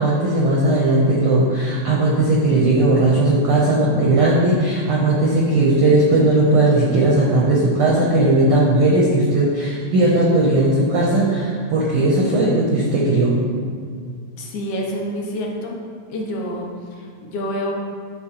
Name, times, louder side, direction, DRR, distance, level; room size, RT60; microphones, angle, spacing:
voice 1, 0.0-13.4, right 2 dB, 85° right, -4 dB, 1.2 m, -17 dB
voice 2, 14.4-15.8 16.1-17.7, equal, 75° left, -1 dB, 2.1 m, -28 dB
10.5 x 4.2 x 2.9 m, 2.1 s
omnidirectional pair, 3.6 m